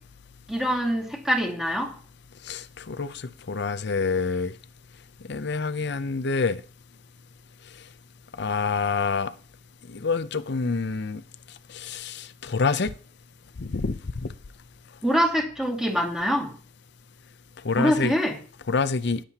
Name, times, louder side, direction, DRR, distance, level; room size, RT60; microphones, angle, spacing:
voice 1, 0.5-1.9 15.0-16.5 17.8-18.4, equal, 5° right, 2.2 m, -24 dB
voice 2, 2.4-4.5 5.3-6.6 8.4-9.3 9.9-11.2 11.7-12.9 13.6-14.3 17.6-18.1 18.7-19.2, left 4 dB, 65° left, 0.7 m, -27 dB
18.5 x 7.7 x 2.9 m
head